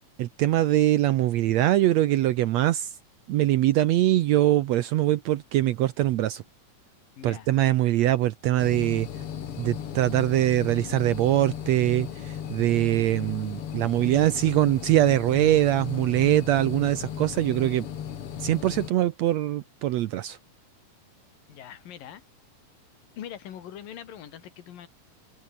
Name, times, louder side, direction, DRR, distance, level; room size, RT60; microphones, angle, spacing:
voice 1, 0.2-2.9 3.3-6.4 7.2-9.1 9.6-17.8 18.4-20.4, right 14 dB, 75° right, 1.7 m, -23 dB
voice 2, 7.2-7.5 21.5-22.2 23.2-24.9, left 10 dB, 90° left, 3.7 m, -42 dB
sound 1, 8.6-18.9, left 9 dB, 50° left, 2.2 m, -36 dB
omnidirectional pair, 3.8 m